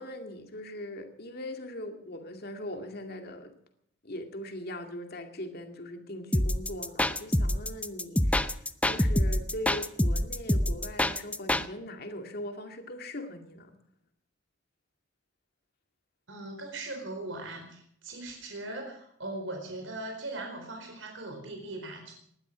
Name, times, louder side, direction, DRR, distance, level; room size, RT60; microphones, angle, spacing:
voice 1, 0.0-3.5 4.0-13.8, left 1 dB, 55° left, 5 dB, 2.2 m, -40 dB
sound 1, 6.3-11.7, left 1 dB, 5° left, 0.6 m, -26 dB
voice 2, 16.3-22.1, right 2 dB, 80° right, 2 dB, 4.3 m, -39 dB
19.5 x 12.0 x 6.1 m, 0.69 s
head